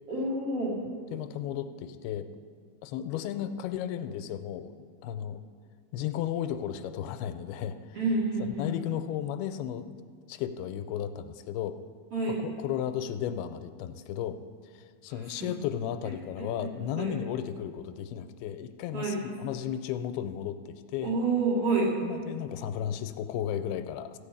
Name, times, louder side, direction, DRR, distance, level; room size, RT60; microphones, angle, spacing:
voice 1, 0.1-0.7 7.9-8.7 12.1-12.4 15.4-15.5 17.0-17.1 18.9-19.2 21.0-21.9, right 3 dB, 45° right, -6 dB, 2.9 m, -28 dB
voice 2, 1.1-2.3 2.8-4.8 5.0-5.4 5.9-8.0 8.4-9.9 10.3-11.8 12.4-14.4 14.7-21.1 22.0-24.2, left 10 dB, 85° left, 9 dB, 2.5 m, -34 dB
15.0 x 5.4 x 8.4 m, 2.1 s
omnidirectional pair, 4.5 m